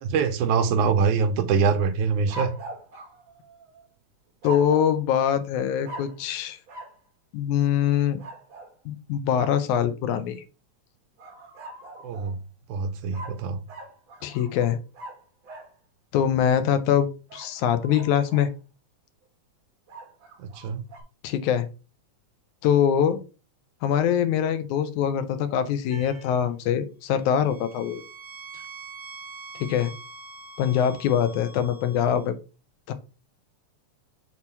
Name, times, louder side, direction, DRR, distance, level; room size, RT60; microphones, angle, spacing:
voice 1, 0.0-2.5 12.0-12.4 12.7-13.6 20.4-20.8, right 5 dB, 80° right, 2.1 m, -24 dB
sound 1, 2.3-3.9 4.4-5.0 5.8-6.2 6.7-7.0 8.2-8.7 11.2-12.4 13.1-15.7 17.3-18.5 19.9-21.0, right 2 dB, 45° right, 2.0 m, -41 dB
voice 2, 4.4-6.6 7.3-8.2 8.9-10.4 14.2-14.8 16.1-18.5 21.2-21.7 22.6-23.2 23.8-28.0 29.6-29.9 30.6-32.4 32.9-33.0, left 9 dB, 80° left, 2.1 m, -23 dB
sound 2, 25.9-26.4 27.2-32.3, right 3 dB, 55° left, 0.7 m, -44 dB
6.2 x 2.9 x 5.4 m
omnidirectional pair, 3.5 m